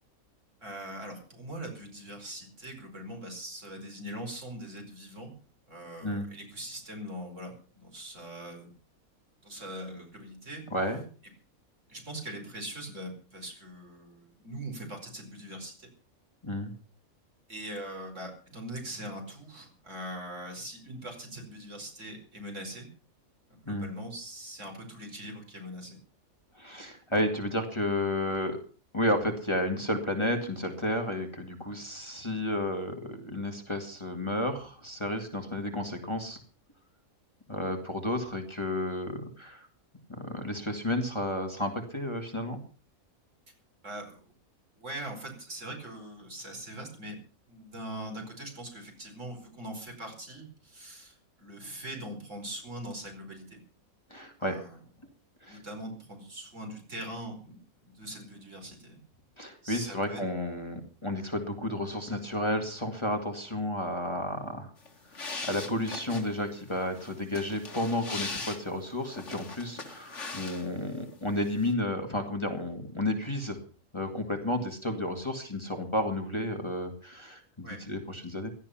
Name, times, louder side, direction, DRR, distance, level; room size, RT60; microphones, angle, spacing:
voice 1, 0.6-5.3 5.7-8.7 9.4-10.6 11.9-15.9 17.5-22.9 23.5-26.0 43.8-44.3 44.8-47.2 47.5-53.6 54.4-54.8 55.5-59.0 59.6-60.2 77.6-77.8, right 1 dB, 60° right, 3 dB, 5.2 m, -42 dB
voice 2, 10.7-11.0 16.4-16.7 23.7-23.9 26.6-28.6 28.9-36.4 37.5-39.7 40.1-42.6 54.1-54.6 55.4-55.6 59.4-64.7 65.4-73.6 73.9-78.5, left 1 dB, 20° left, 4 dB, 2.3 m, -32 dB
sound 1, 64.8-71.0 71.2-71.7, left 3 dB, 55° left, 2.5 m, -40 dB
17.0 x 12.5 x 5.8 m, 0.40 s
omnidirectional pair, 1.5 m